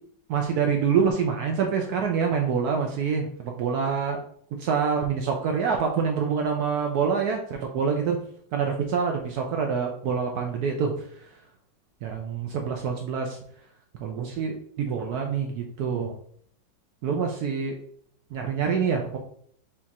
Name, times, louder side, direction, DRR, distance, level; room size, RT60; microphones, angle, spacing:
voice 1, 0.3-4.2 4.6-8.2 8.5-10.9 12.0-13.4 14.0-16.1 17.0-17.7 18.3-19.2, right 6 dB, 70° right, 2 dB, 1.0 m, -26 dB
4.4 x 2.4 x 4.0 m, 0.63 s
omnidirectional pair, 1.9 m